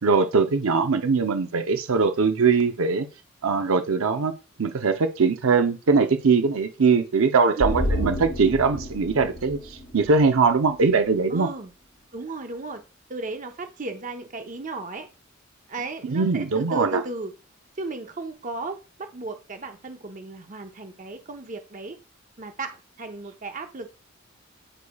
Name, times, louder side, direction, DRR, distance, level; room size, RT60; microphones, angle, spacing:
voice 1, 0.0-3.1 3.4-4.3 4.6-11.5 16.0-17.0, right 4 dB, 90° right, 0.6 m, -21 dB
sound 1, 7.6-11.0 11.3-11.4, left 1 dB, 60° left, 1.5 m, -31 dB
voice 2, 7.6-8.1 11.3-11.7 12.1-12.8 13.1-15.1 15.7-17.3 17.8-22.0 22.4-23.9, right 2 dB, 40° right, 0.7 m, -35 dB
8.9 x 4.8 x 2.3 m
head